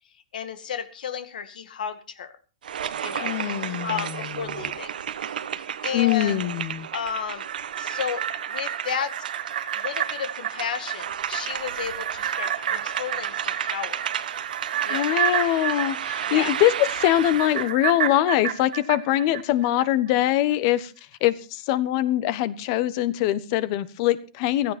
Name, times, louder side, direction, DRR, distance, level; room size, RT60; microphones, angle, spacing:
voice 1, 0.3-2.3 3.0-3.3 3.8-4.9 5.8-6.4 6.9-7.5 7.8-9.1 9.7-14.1 14.8-15.1 16.3-16.5, left 7 dB, 80° left, 11 dB, 2.1 m, -32 dB
sound 1, 2.6-17.7, right 9 dB, 85° right, 1.3 m, -33 dB
voice 2, 3.2-4.2 5.9-6.9 14.9-20.9 21.2-24.7, left 13 dB, 40° left, 17 dB, 1.2 m, -23 dB
sound 2, 7.3-19.9 20.2-20.3, right 11 dB, 70° right, 1.7 m, -31 dB
16.0 x 14.5 x 4.4 m, 0.34 s
hypercardioid pair, 155°, 5 cm